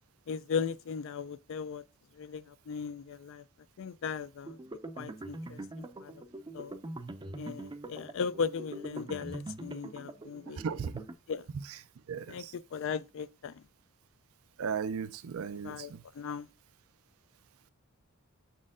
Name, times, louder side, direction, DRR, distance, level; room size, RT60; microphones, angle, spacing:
voice 1, 0.3-1.8 2.2-3.4 3.8-4.6 5.0-6.2 6.5-6.7 7.4-10.6 11.3-11.5 12.3-12.4 12.7-13.6 15.6-16.5, left 6 dB, 65° left, 0.4 m, -37 dB
sound 1, 4.4-11.1, right 2 dB, 20° right, 0.5 m, -43 dB
voice 2, 12.1-12.5 14.6-15.8, right 6 dB, 80° right, 0.4 m, -35 dB
6.2 x 4.2 x 3.6 m
head